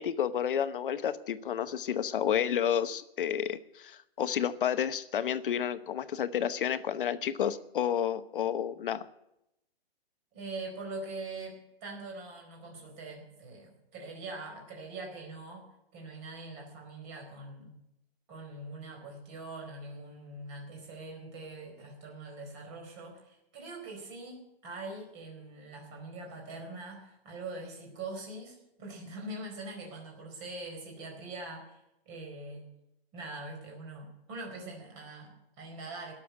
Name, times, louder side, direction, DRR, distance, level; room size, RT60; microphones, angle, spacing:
voice 1, 0.0-9.0, left 9 dB, 55° left, 12 dB, 1.0 m, -30 dB
voice 2, 10.3-15.7 15.9-17.7 18.3-31.8 32.1-32.7 33.1-36.1, right 2 dB, 25° right, 2 dB, 4.5 m, -43 dB
17.5 x 7.2 x 9.6 m, 0.85 s
hypercardioid pair, 170°, 31 cm